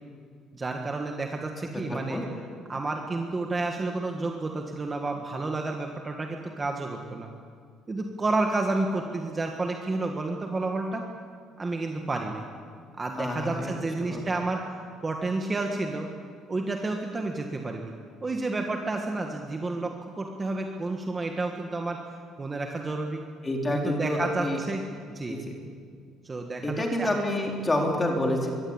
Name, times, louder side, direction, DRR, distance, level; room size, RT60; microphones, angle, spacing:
voice 1, 0.5-2.2 2.7-7.3 7.9-11.0 11.6-12.4 13.0-14.6 15.0-16.1 16.5-17.9 18.2-22.0 22.4-23.2 23.7-25.4 26.2-27.1, right 2 dB, 15° right, 2 dB, 1.6 m, -30 dB
voice 2, 1.7-2.2 13.2-13.7 14.0-14.2 23.4-24.6 25.3-25.4 26.6-28.5, left 1 dB, 15° left, 1 dB, 3.7 m, -28 dB
23.0 x 22.5 x 8.9 m, 2.1 s
cardioid pair, 175°, 0 cm